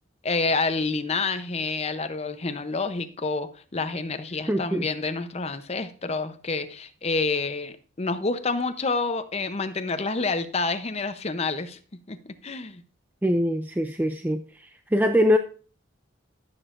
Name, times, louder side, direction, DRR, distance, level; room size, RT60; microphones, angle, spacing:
voice 1, 0.2-12.8, left 3 dB, 30° left, 0.6 m, -28 dB
voice 2, 4.5-4.9 13.2-15.4, equal, 10° right, 0.3 m, -23 dB
14.5 x 7.0 x 2.5 m
head